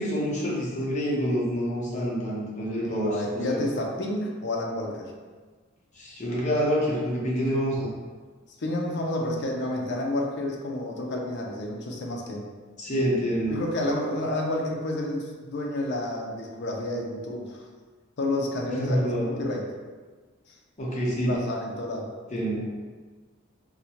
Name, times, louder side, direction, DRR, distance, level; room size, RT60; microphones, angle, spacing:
voice 1, 0.0-3.6 6.0-7.9 12.8-13.6 18.7-19.2 20.8-21.4 22.3-22.7, equal, 35° left, -5 dB, 0.8 m, -27 dB
voice 2, 2.8-5.1 8.6-12.5 13.5-17.7 18.2-19.7 21.2-22.1, left 1 dB, 55° left, 0 dB, 0.5 m, -30 dB
4.0 x 2.1 x 2.9 m, 1.4 s
head